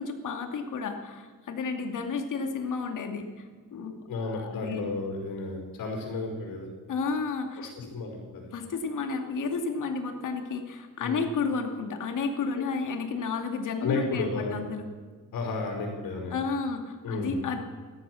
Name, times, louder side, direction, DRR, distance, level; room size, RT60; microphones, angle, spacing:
voice 1, 0.0-3.5 3.7-4.9 6.9-7.7 8.5-14.8 16.3-17.6, left 4 dB, 65° left, 5 dB, 2.4 m, -32 dB
voice 2, 4.1-6.7 7.6-8.5 11.0-11.2 12.6-12.7 13.8-14.6 15.3-16.3 17.0-17.3, left 3 dB, 90° left, 0 dB, 5.4 m, -33 dB
17.5 x 13.0 x 6.3 m, 1.5 s
cardioid pair, 125°, 34 cm